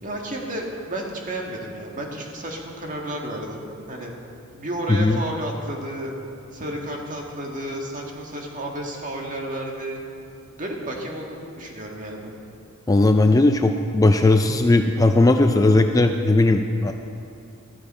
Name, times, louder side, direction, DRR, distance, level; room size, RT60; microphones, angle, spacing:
voice 1, 0.0-4.1 4.5-6.2 6.5-10.0 10.5-12.3, right 1 dB, 40° right, 0 dB, 1.8 m, -32 dB
voice 2, 12.9-16.9, left 2 dB, 15° left, 6 dB, 0.4 m, -17 dB
14.0 x 13.5 x 4.3 m, 2.6 s
head